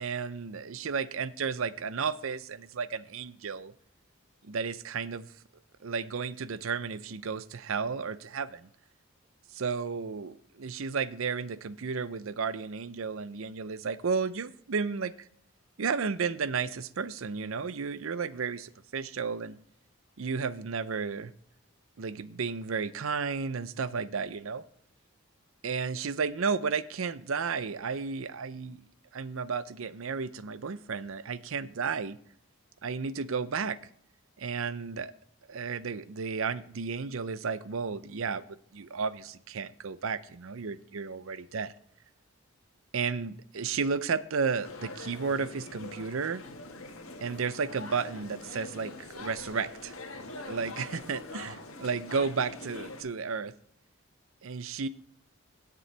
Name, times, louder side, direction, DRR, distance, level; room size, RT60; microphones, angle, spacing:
voice 1, 0.0-3.7 4.4-5.3 5.8-8.7 9.5-15.3 15.8-19.6 20.2-21.3 22.0-24.6 25.6-28.8 29.1-32.2 32.8-33.8 34.4-35.1 35.5-38.4 38.7-41.7 42.9-46.4 47.2-49.9 50.4-53.5 54.4-54.9, right 5 dB, 70° right, 16 dB, 0.6 m, -33 dB
sound 1, 44.6-53.0, left 2 dB, 80° left, 1.7 m, -43 dB
16.5 x 6.9 x 3.3 m, 0.67 s
head